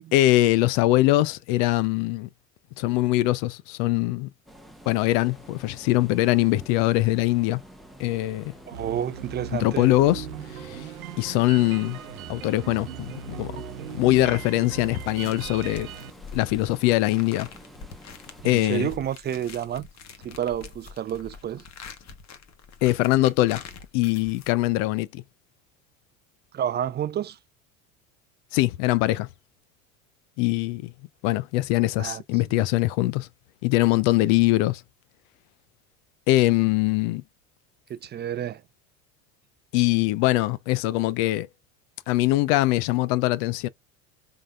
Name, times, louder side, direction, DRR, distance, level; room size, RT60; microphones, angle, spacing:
voice 1, 0.0-2.3 2.8-4.3 4.9-7.6 8.0-8.5 9.6-10.2 10.6-10.9 11.2-12.0 12.3-13.5 13.9-15.9 16.3-17.5 18.4-18.9 22.8-23.6 23.9-25.2 28.5-29.3 30.4-30.9 31.2-33.3 33.6-34.8 36.3-37.2 39.7-41.5 42.1-43.7, left 17 dB, 60° left, 0.6 m, -22 dB
sound 1, 4.5-19.0, equal, ahead, 1.0 m, -48 dB
voice 2, 8.7-9.9 18.4-19.9 20.2-21.6 26.5-27.4 32.0-32.2 37.9-38.6, right 10 dB, 25° right, 0.5 m, -30 dB
sound 2, 8.7-16.1, right 8 dB, 80° right, 0.8 m, -38 dB
sound 3, 14.7-24.9, left 5 dB, 40° left, 1.2 m, -45 dB
4.8 x 3.9 x 2.4 m
hypercardioid pair, 75°, 41 cm